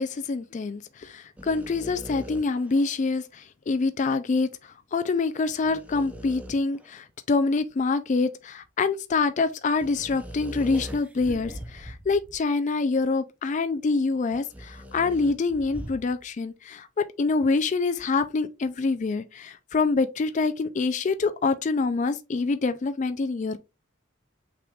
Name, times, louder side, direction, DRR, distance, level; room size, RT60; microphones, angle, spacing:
voice 1, 0.0-4.5 4.9-23.6, left 4 dB, 35° left, 0.4 m, -26 dB
sound 1, 1.4-3.0 5.4-6.9 9.7-12.4 13.0-13.1 14.3-16.2, equal, 5° right, 0.7 m, -41 dB
5.8 x 3.6 x 2.3 m
head